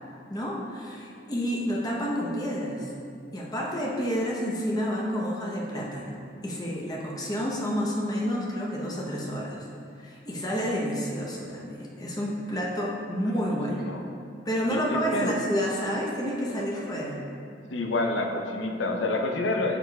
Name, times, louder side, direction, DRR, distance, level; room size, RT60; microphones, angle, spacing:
voice 1, 0.3-2.9 3.3-6.1 6.4-9.6 10.0-13.8 14.4-17.2, equal, 20° left, -3 dB, 0.8 m, -29 dB
voice 2, 13.7-14.0 14.7-15.3 17.7-19.8, left 2 dB, 80° left, 3 dB, 0.7 m, -28 dB
8.8 x 6.7 x 2.3 m, 2.4 s
head